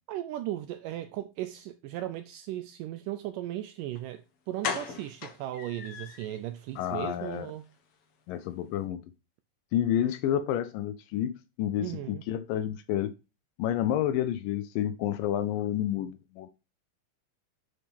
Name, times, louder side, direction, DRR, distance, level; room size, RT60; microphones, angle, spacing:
voice 1, 0.1-7.6 11.8-12.2, right 13 dB, 80° right, 1.9 m, -37 dB
sound 1, 4.0-4.1 4.6-6.4 6.8-6.9 7.2-7.4 7.6-7.7, left 6 dB, 60° left, 1.5 m, -37 dB
voice 2, 6.8-7.5 8.3-9.0 9.7-13.1 13.6-16.5, left 11 dB, 80° left, 2.1 m, -29 dB
9.8 x 4.3 x 3.5 m
omnidirectional pair, 4.2 m